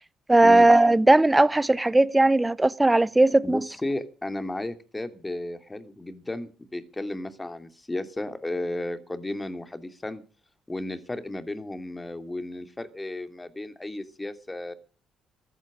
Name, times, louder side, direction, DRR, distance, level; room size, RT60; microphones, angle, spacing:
voice 1, 0.3-3.6, right 2 dB, 15° right, 0.8 m, -18 dB
voice 2, 3.4-10.2 10.7-14.7, left 1 dB, 15° left, 2.7 m, -34 dB
14.5 x 14.0 x 6.3 m
hypercardioid pair, 50°, 0 cm